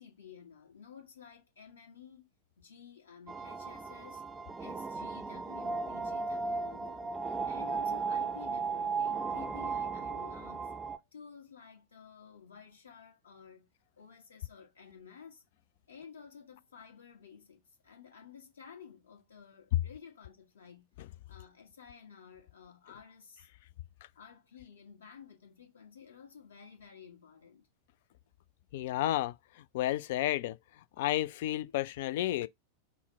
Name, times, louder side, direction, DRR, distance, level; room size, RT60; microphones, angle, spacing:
voice 1, 0.0-2.3 2.6-4.2 4.6-7.1 7.4-13.7 14.0-15.4 15.9-20.9 21.3-23.5 24.1-27.7, left 7 dB, 70° left, 1.4 m, -53 dB
sound 1, 3.3-11.0, right 4 dB, 15° right, 0.4 m, -36 dB
voice 2, 28.7-29.3 29.7-30.6 31.0-32.5, left 14 dB, 55° left, 0.3 m, -31 dB
5.4 x 2.1 x 4.3 m
figure-of-eight pair, 90°, 0 cm